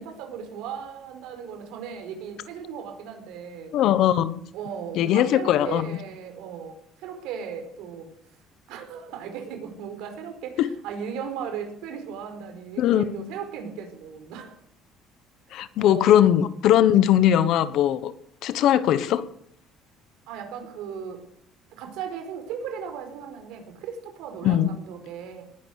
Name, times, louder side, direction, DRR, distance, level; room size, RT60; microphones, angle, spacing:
voice 1, 0.0-3.8 4.5-8.1 8.7-14.5 15.8-16.2 20.3-21.3 21.7-25.4, right 7 dB, 75° right, 6 dB, 4.7 m, -37 dB
voice 2, 3.7-4.5 4.9-6.0 10.6-10.7 12.8-13.3 15.5-18.1 18.4-19.2 24.4-24.7, left 11 dB, 55° left, 14 dB, 1.2 m, -20 dB
19.5 x 11.0 x 6.6 m, 0.69 s
cardioid pair, 160°, 0 cm